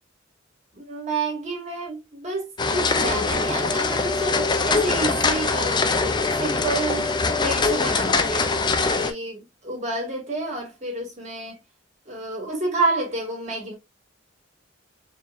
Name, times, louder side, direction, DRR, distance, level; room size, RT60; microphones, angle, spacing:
voice 1, 0.7-11.6 12.1-13.7, right 3 dB, 35° right, 2.1 m, -29 dB
sound 1, 2.6-9.1, left 4 dB, 20° left, 0.4 m, -23 dB
4.6 x 3.2 x 2.5 m
head